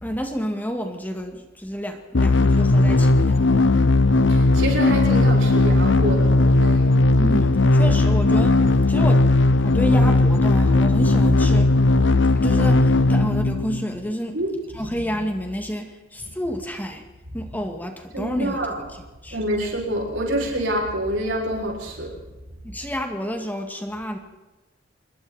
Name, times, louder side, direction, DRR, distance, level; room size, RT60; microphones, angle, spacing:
voice 1, 0.0-3.6 7.0-8.6 8.9-9.3 9.6-11.7 12.4-14.4 14.7-17.1 17.3-19.4 22.6-24.2, equal, 10° left, 4 dB, 2.3 m, -29 dB
sound 1, 2.1-14.1, left 2 dB, 70° left, 0.9 m, -17 dB
voice 2, 4.3-6.3 6.6-6.9 14.3-15.0 18.1-18.8 19.3-22.1, right 1 dB, 75° right, -1 dB, 7.1 m, -27 dB
27.5 x 21.5 x 4.5 m, 1.1 s
head